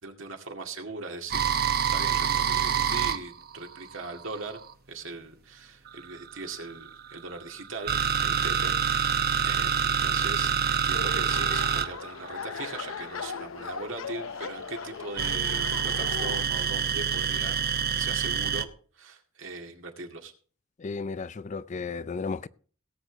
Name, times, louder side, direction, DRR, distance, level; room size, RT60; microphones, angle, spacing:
voice 1, 0.0-1.5 1.9-4.6 4.9-18.7 19.0-20.3, right 3 dB, 65° right, 2.2 m, -40 dB
sound 1, 1.3-4.7 5.9-13.3 15.2-18.6, right 7 dB, 50° right, 0.9 m, -27 dB
sound 2, 10.9-16.4, left 6 dB, 75° left, 0.7 m, -38 dB
voice 2, 20.8-22.5, left 4 dB, 35° left, 0.4 m, -34 dB
18.0 x 8.2 x 4.0 m
head